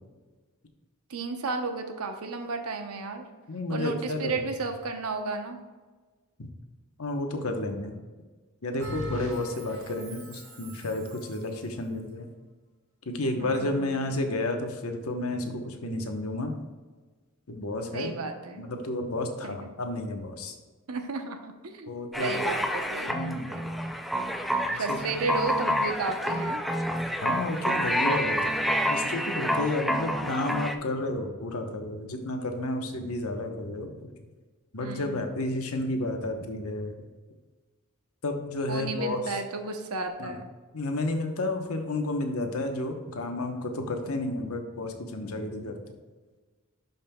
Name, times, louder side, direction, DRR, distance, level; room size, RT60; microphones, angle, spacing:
voice 1, 1.1-3.2 3.7-5.6 13.1-14.0 17.9-18.6 19.4-19.7 20.9-23.6 24.6-26.6 34.8-35.2 38.7-40.5, right 3 dB, 90° right, 5 dB, 0.9 m, -33 dB
voice 2, 3.5-4.5 6.4-6.5 7.0-8.0 8.6-12.3 13.0-16.6 17.5-18.2 18.6-20.6 21.9-22.4 23.1-23.6 24.7-25.0 27.2-28.6 28.9-34.1 34.7-36.9 38.2-39.4 40.2-40.4 40.7-45.8, left 2 dB, 80° left, 4 dB, 1.0 m, -31 dB
Bell, 8.8-11.6, right 1 dB, 65° right, 1.6 m, -41 dB
sound 1, 22.1-30.7, equal, ahead, 0.3 m, -28 dB
11.5 x 5.3 x 2.3 m, 1.3 s
head